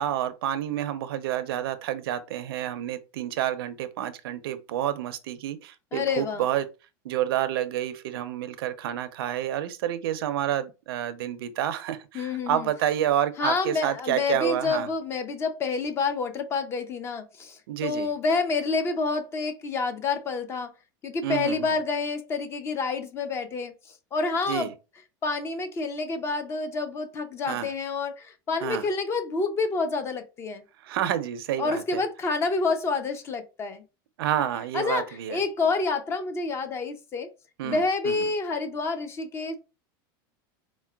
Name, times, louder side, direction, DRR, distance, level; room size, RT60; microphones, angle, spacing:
voice 1, 0.0-6.6 7.0-14.9 17.7-18.1 21.2-21.8 24.5-24.7 27.5-27.7 28.6-28.9 30.8-32.0 34.2-35.4 37.6-38.2, right 11 dB, 85° right, 0.5 m, -29 dB
voice 2, 5.9-6.5 12.1-12.7 13.4-20.7 21.0-23.7 24.1-24.7 25.2-30.6 31.6-33.8 34.7-37.3 37.6-39.6, left 4 dB, 20° left, 0.4 m, -28 dB
4.4 x 2.1 x 2.2 m
supercardioid pair, 155°, 12 cm